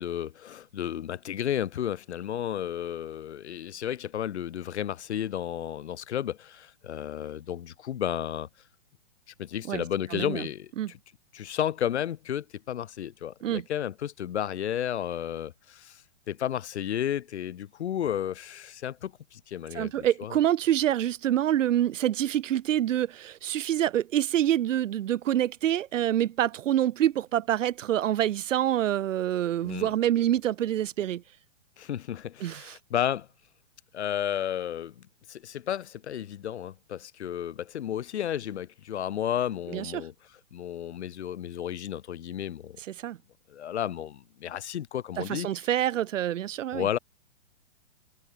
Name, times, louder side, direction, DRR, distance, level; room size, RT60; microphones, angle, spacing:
voice 1, 0.0-8.5 9.4-10.7 11.3-16.0 16.3-20.4 29.6-29.9 31.8-33.3 33.9-40.1 40.5-42.8 43.5-45.5 46.7-47.0, left 10 dB, 60° left, 1.0 m, -32 dB
voice 2, 10.1-10.5 10.8-10.9 13.4-13.6 19.7-31.2 32.4-32.8 39.7-40.0 42.9-43.2 45.2-46.9, right 11 dB, 75° right, 0.7 m, -26 dB
hypercardioid pair, 175°, 38 cm